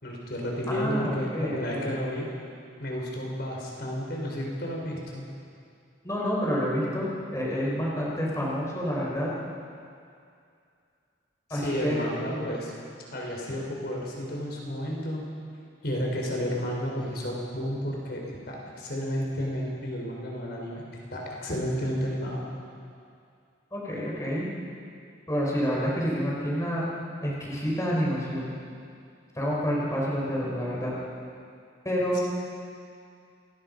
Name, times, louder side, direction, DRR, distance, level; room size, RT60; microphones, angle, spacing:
voice 1, 0.0-2.3 2.8-5.2 11.5-12.7 13.1-15.3 15.8-20.8 21.1-22.4 32.1-32.2, equal, 55° left, -2 dB, 4.7 m, -32 dB
voice 2, 0.7-1.9 6.0-9.3 11.5-12.5 23.7-24.5 25.3-26.9 27.2-28.5 29.3-30.9 31.8-32.2, equal, 15° left, -5 dB, 5.1 m, -28 dB
28.5 x 21.5 x 5.5 m, 2.4 s
head